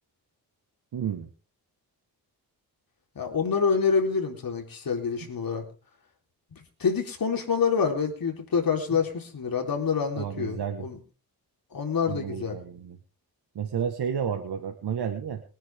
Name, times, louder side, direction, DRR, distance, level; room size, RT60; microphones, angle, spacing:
voice 1, 0.9-1.3 10.2-10.9 12.1-13.0 13.6-15.4, right 8 dB, 85° right, 5 dB, 1.7 m, -31 dB
voice 2, 3.2-5.6 6.5-11.0 11.7-12.6, left 6 dB, 65° left, 2 dB, 4.1 m, -27 dB
23.0 x 10.0 x 3.7 m, 0.36 s
cardioid pair, 95°, 38 cm